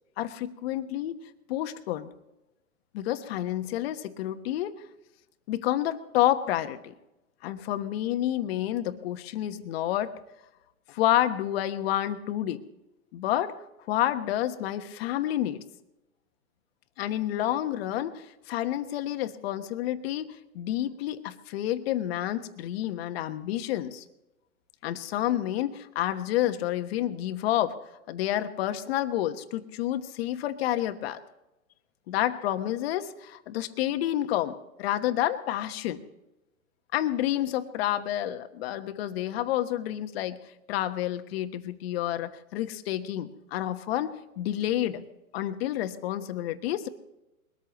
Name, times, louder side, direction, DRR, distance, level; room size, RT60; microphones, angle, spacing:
voice 1, 0.2-1.1 1.5-2.1 2.9-4.7 5.5-6.9 7.4-10.1 10.9-12.6 13.1-13.5 13.9-15.6 17.0-20.3 20.5-24.0 24.8-27.8 28.1-31.2 32.1-36.0 36.9-40.4 40.7-45.0 45.3-46.9, left 13 dB, 45° left, 9 dB, 1.2 m, -29 dB
22.0 x 13.5 x 3.0 m, 0.95 s
hypercardioid pair, 135°, 43 cm